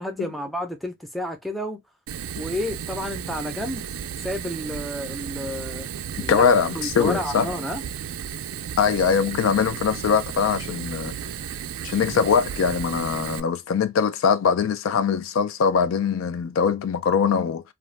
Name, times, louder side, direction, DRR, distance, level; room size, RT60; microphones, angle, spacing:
voice 1, 0.0-1.8 2.4-3.9 4.2-5.9 6.2-6.5 6.8-7.8, left 1 dB, ahead, 0.4 m, -30 dB
Fire, 2.1-13.4, right 9 dB, 85° right, 0.3 m, -34 dB
voice 2, 6.2-7.5 8.8-11.1 11.8-17.6, left 6 dB, 75° left, 0.3 m, -22 dB
2.5 x 2.1 x 3.2 m
head